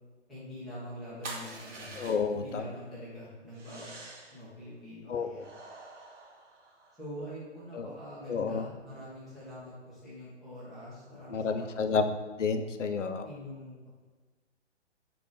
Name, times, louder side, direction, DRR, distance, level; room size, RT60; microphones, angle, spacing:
voice 1, 0.3-2.0 2.3-3.9 4.3-5.5 7.0-11.8 13.2-13.8, equal, ahead, -12 dB, 0.3 m, -44 dB
sound 1, 1.2-2.5 3.5-4.4 5.4-7.0, right 3 dB, 85° right, 0.8 m, -46 dB
voice 2, 2.0-2.6 5.1-5.4 7.7-7.9 8.3-8.7 11.3-12.1 12.4-13.3, left 5 dB, 90° left, 7 dB, 0.5 m, -30 dB
3.8 x 2.5 x 3.7 m, 1.3 s
figure-of-eight pair, 125°, 35 cm